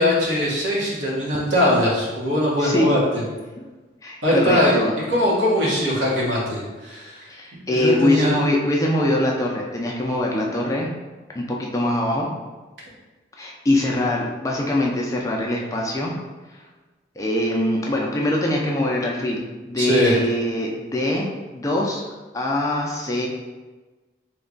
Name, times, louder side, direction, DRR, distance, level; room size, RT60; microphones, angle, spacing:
voice 1, 0.0-3.2 4.2-4.8 5.1-7.3 7.7-8.3 19.8-20.2, left 1 dB, 85° right, -5 dB, 1.1 m, -21 dB
voice 2, 2.6-3.0 4.0-5.0 7.3-10.9 11.3-12.3 13.4-16.1 16.5-16.6 17.2-22.0 22.3-23.3, left 1 dB, 15° left, -2 dB, 0.4 m, -23 dB
3.2 x 2.2 x 3.8 m, 1.2 s
head